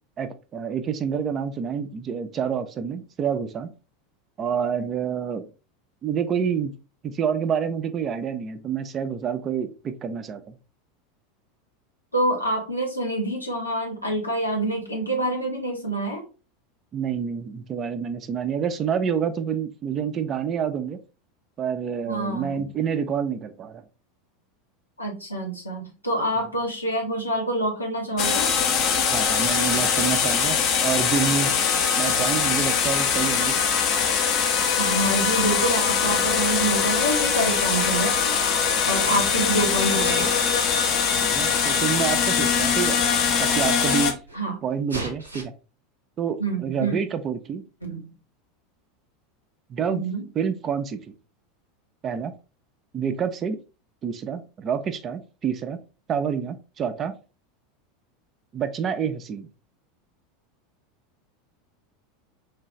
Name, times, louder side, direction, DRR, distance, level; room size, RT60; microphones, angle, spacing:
voice 1, 0.2-3.7 4.4-5.5 6.0-6.7 7.0-10.6 16.9-21.0 21.6-23.8 29.0-31.5 32.0-33.6 41.2-43.0 43.4-44.2 44.6-45.5 46.2-47.6 49.7-50.0 50.4-51.0 52.0-52.3 52.9-53.6 54.0-55.8 56.1-57.1 58.5-59.5, right 7 dB, 30° right, 9 dB, 0.4 m, -28 dB
voice 2, 12.1-16.3 22.0-22.7 25.0-28.5 34.8-38.4 38.9-40.3 44.3-44.6 46.4-47.0 47.8-48.1 49.9-50.3, right 1 dB, 85° left, 0 dB, 0.8 m, -27 dB
sound 1, 28.2-44.1, left 6 dB, 45° left, 0.5 m, -22 dB
Sneeze, 38.9-39.4 39.9-40.5 41.5-41.6 42.4-42.5 42.7-42.8 43.2-44.4 44.9-45.4, right 2 dB, 85° right, 0.6 m, -37 dB
3.3 x 2.3 x 2.9 m, 0.32 s
figure-of-eight pair, 80°, 0 cm